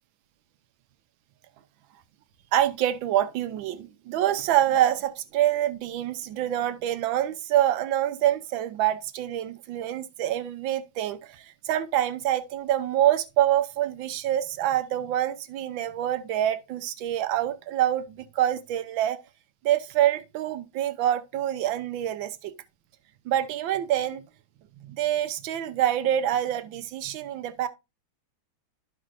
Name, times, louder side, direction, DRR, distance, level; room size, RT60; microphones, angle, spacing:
voice 1, 2.5-19.2 19.6-22.5 23.2-24.2 24.8-27.7, right 12 dB, 75° right, 1.5 m, -26 dB
12.5 x 5.3 x 2.5 m
omnidirectional pair, 2.2 m